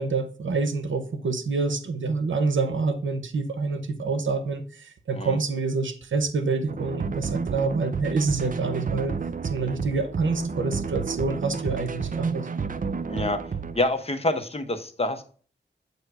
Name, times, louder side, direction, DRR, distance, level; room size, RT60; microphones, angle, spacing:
voice 1, 0.0-12.5, right 4 dB, 90° right, 0.8 m, -27 dB
sound 1, 6.7-13.8, right 5 dB, 45° right, 0.5 m, -31 dB
voice 2, 13.1-13.4 13.8-15.2, left 2 dB, 30° left, 0.9 m, -27 dB
7.8 x 2.8 x 4.6 m
wide cardioid pair, 70°, 19 cm